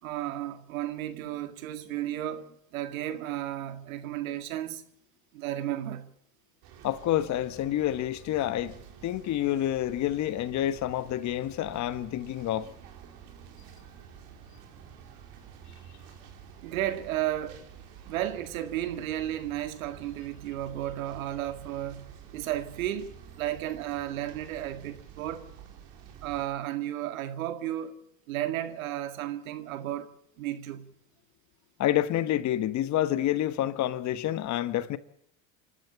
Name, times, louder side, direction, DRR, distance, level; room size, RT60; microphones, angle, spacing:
voice 1, 0.0-4.8 5.3-6.1 16.6-17.7 18.1-25.5 26.2-28.0 28.3-30.9, right 12 dB, 75° right, 2.0 m, -33 dB
sound 1, 6.6-26.5, right 8 dB, 60° right, 4.2 m, -49 dB
voice 2, 6.8-8.7 9.0-12.7 31.8-35.0, left 12 dB, 40° left, 1.3 m, -28 dB
27.5 x 12.5 x 8.7 m
hypercardioid pair, 90°, 41 cm